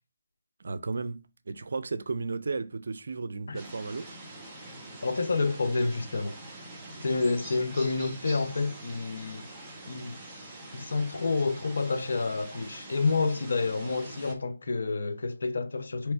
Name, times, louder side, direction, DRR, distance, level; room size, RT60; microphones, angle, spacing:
voice 1, 0.6-4.2, right 4 dB, 60° right, 0.5 m, -34 dB
sound 1, 3.5-14.3, right 1 dB, 10° right, 0.9 m, -45 dB
voice 2, 5.0-6.4 7.0-9.5 9.9-10.5 10.7-16.1, left 3 dB, 65° left, 0.7 m, -29 dB
3.2 x 3.2 x 4.4 m
figure-of-eight pair, 160°, 0 cm